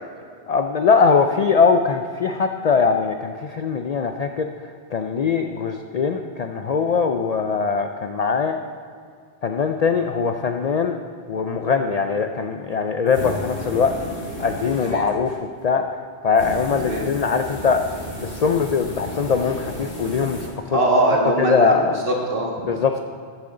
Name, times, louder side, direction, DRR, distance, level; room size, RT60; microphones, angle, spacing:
voice 1, 0.5-4.5 4.9-8.6 9.4-11.0 11.3-13.9 14.4-15.8 16.2-17.8 18.2-20.8 21.4-22.0 22.7-23.0, left 5 dB, 55° left, 5 dB, 0.4 m, -21 dB
sound 1, 13.1-15.4 16.3-20.5, left 1 dB, 75° left, 2.1 m, -33 dB
voice 2, 20.7-22.5, right 1 dB, 55° right, -1 dB, 1.8 m, -21 dB
14.5 x 7.5 x 3.8 m, 2.2 s
omnidirectional pair, 1.1 m